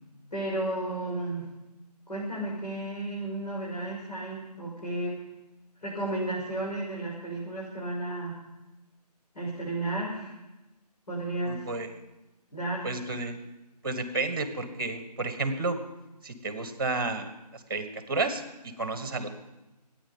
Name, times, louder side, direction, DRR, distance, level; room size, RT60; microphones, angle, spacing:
voice 1, 0.3-1.5 2.1-5.2 5.8-8.4 9.3-10.3 11.1-11.7 12.5-12.9, right 2 dB, 75° left, -6 dB, 6.4 m, -33 dB
voice 2, 11.4-11.9 12.8-13.4 13.8-15.8 16.2-17.3 17.7-18.4 18.8-19.3, right 3 dB, 35° right, 9 dB, 1.5 m, -31 dB
24.0 x 9.7 x 5.4 m, 1.0 s
figure-of-eight pair, 165°, 21 cm